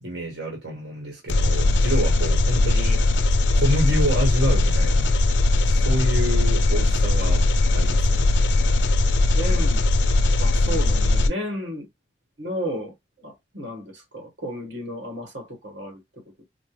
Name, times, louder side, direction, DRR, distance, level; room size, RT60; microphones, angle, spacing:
voice 1, 0.0-3.0 3.5-5.1 5.7-7.5 7.7-8.3, equal, 70° right, 1.2 m, -27 dB
Engine, 1.3-11.3, left 2 dB, 85° left, 0.5 m, -19 dB
voice 2, 9.3-9.8 10.4-11.9 12.4-16.0 16.4-16.5, equal, 85° right, 1.5 m, -33 dB
4.4 x 2.1 x 3.1 m
head